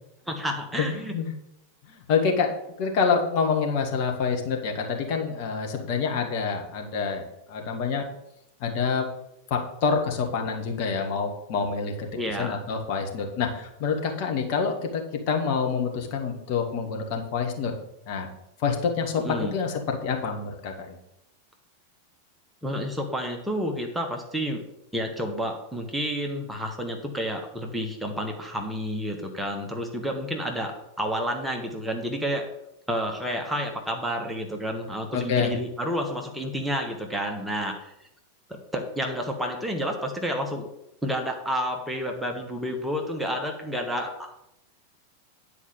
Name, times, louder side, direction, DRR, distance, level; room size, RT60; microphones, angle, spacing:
voice 1, 0.3-1.1 12.1-12.6 19.2-19.5 22.6-24.6 24.9-32.5 32.9-38.1 38.5-40.7 41.0-44.4, equal, 5° right, 2 dB, 1.3 m, -30 dB
voice 2, 0.8-1.3 1.9-2.5 2.8-7.2 7.5-8.0 8.6-9.1 9.5-12.1 12.4-17.7 18.1-18.3 18.6-20.9 35.1-35.5, left 5 dB, 45° left, 2 dB, 1.8 m, -27 dB
9.8 x 4.8 x 7.1 m, 0.83 s
figure-of-eight pair, 90°, 0 cm